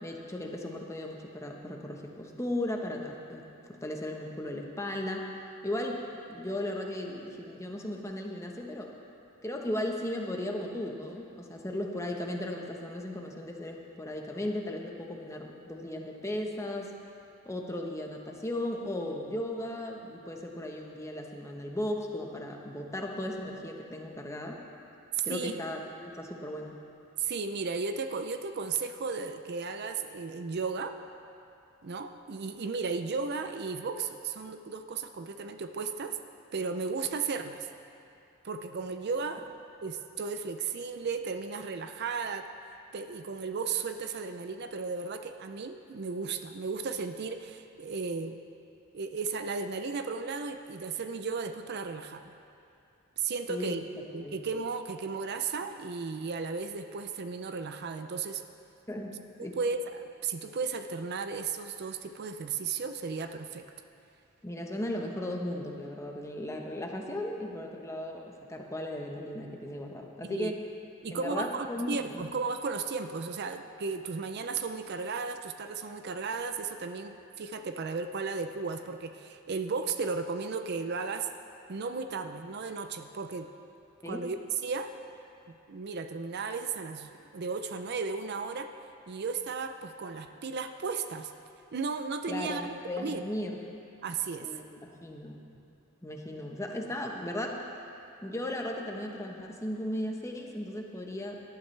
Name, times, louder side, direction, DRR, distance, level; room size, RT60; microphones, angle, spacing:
voice 1, 0.0-5.3 5.6-6.0 6.3-8.9 9.4-16.9 17.4-24.6 25.2-26.8 53.5-53.7 54.2-54.3 58.9-59.6 64.4-70.6 71.1-72.2 84.0-84.2 92.3-93.6 94.4-95.6 96.0-97.6 98.2-101.4, left 1 dB, 15° left, 1 dB, 1.1 m, -36 dB
voice 2, 27.2-30.9 31.8-36.2 36.5-37.7 38.4-39.5 39.8-42.5 42.9-48.4 48.9-52.3 53.2-53.8 54.1-58.4 59.4-63.7 70.2-70.5 71.0-81.3 81.7-83.5 84.1-84.9 85.5-88.7 89.1-91.3 91.7-93.2 94.0-94.5, right 4 dB, 55° right, 7 dB, 0.5 m, -35 dB
18.5 x 12.0 x 3.3 m, 2.6 s
head